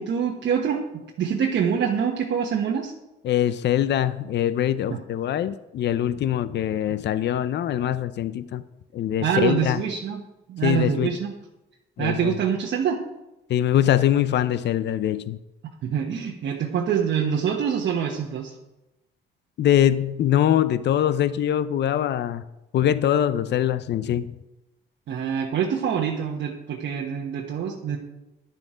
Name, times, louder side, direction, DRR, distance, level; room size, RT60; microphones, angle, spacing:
voice 1, 0.0-2.9 4.9-5.0 9.2-10.2 10.5-11.3 12.0-13.0 15.6-18.5 25.1-28.0, right 7 dB, 70° right, -1 dB, 1.2 m, -25 dB
voice 2, 3.2-8.6 8.9-9.8 10.6-11.1 12.0-12.4 13.5-15.4 19.6-22.4 22.7-24.3, left 11 dB, 60° left, 14 dB, 0.6 m, -23 dB
11.0 x 7.4 x 5.0 m, 0.95 s
cardioid pair, 90°, 20 cm